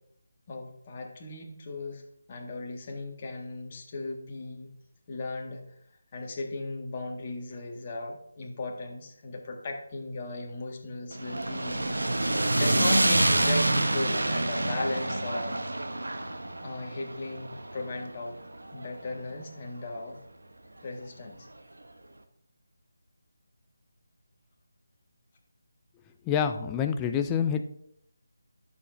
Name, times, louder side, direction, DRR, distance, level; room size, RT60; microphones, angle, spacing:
voice 1, 0.5-2.0 2.3-4.7 5.1-5.8 6.1-15.6 16.6-18.4 18.7-20.2 20.8-21.5, left 2 dB, 35° left, 0 dB, 1.7 m, -37 dB
sound 1, 11.1-19.4, right 1 dB, 80° right, 1.0 m, -27 dB
voice 2, 26.2-27.6, left 8 dB, 15° left, 7 dB, 0.5 m, -27 dB
12.5 x 7.0 x 2.6 m, 0.74 s
figure-of-eight pair, 160°, 0 cm